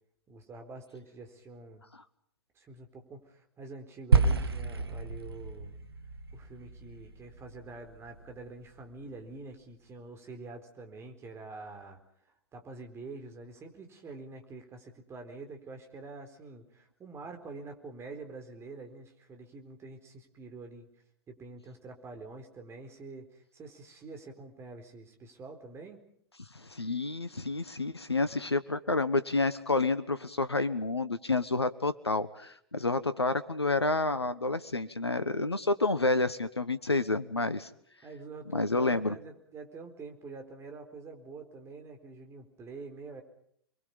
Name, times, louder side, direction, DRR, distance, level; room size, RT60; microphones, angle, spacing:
voice 1, 0.3-1.8 2.5-5.8 6.3-12.0 12.5-20.9 21.3-26.0 38.0-43.2, right 3 dB, 20° right, 5 dB, 4.3 m, -46 dB
sound 1, 4.1-8.5, right 4 dB, 70° right, 1.8 m, -30 dB
voice 2, 26.6-37.7 38.5-39.2, left 3 dB, 85° left, 13 dB, 1.2 m, -29 dB
29.5 x 22.5 x 5.5 m, 0.68 s
figure-of-eight pair, 105°, 13 cm